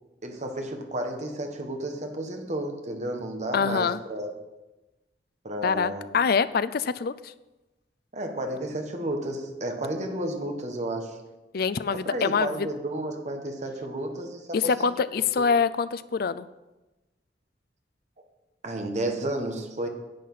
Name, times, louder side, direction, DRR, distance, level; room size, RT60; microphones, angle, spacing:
voice 1, 0.2-4.3 5.4-6.1 8.1-11.2 11.9-15.0 18.6-19.9, right 1 dB, 45° right, 4 dB, 1.6 m, -32 dB
voice 2, 3.5-4.0 5.6-7.3 11.5-12.7 14.5-16.5, left 5 dB, 60° left, 15 dB, 0.5 m, -25 dB
10.5 x 8.5 x 5.7 m, 1.1 s
head